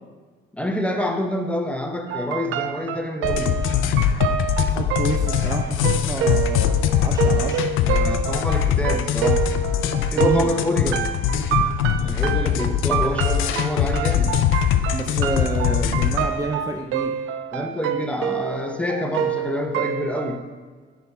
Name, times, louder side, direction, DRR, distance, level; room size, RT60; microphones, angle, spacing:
voice 1, 0.5-3.5 7.8-9.5 10.1-11.1 12.0-14.3 17.5-20.4, left 1 dB, 5° left, 4 dB, 0.8 m, -27 dB
sound 1, 2.1-20.4, right 8 dB, 80° right, 0.4 m, -27 dB
sound 2, 3.2-16.3, left 9 dB, 85° left, 0.5 m, -22 dB
voice 2, 4.7-7.7 9.8-10.5 14.9-17.2, right 2 dB, 15° right, 2 dB, 0.5 m, -29 dB
10.0 x 3.6 x 4.2 m, 1.5 s
cardioid pair, 90°, 20 cm